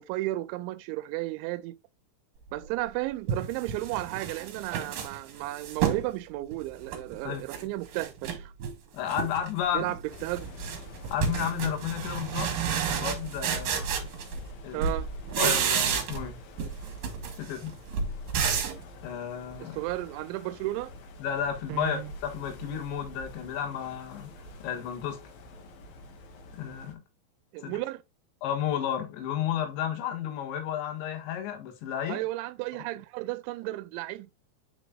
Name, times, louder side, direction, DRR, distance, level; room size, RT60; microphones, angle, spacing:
voice 1, 0.0-1.7 2.5-8.5 9.7-10.5 14.7-15.1 19.6-20.9 21.7-22.1 27.5-28.0 32.1-34.4, right 17 dB, 90° right, 2.9 m, -33 dB
sound 1, 2.6-2.7 3.3-6.1 6.5-7.6 7.9-8.8 9.1-9.5 9.8-14.5 14.8-16.3 16.6-18.8, right 7 dB, 60° right, 2.6 m, -31 dB
voice 2, 8.9-9.9 11.1-12.5 12.9-14.1 14.6-14.9 15.4-16.4 17.4-17.8 19.0-19.8 21.2-24.3 24.6-25.2 26.5-27.0 27.6-27.7 28.4-32.2 32.7-32.8, left 9 dB, 80° left, 3.7 m, -32 dB
sound 2, 10.1-26.9, equal, 65° left, 2.7 m, -47 dB
9.5 x 5.2 x 2.3 m
omnidirectional pair, 5.2 m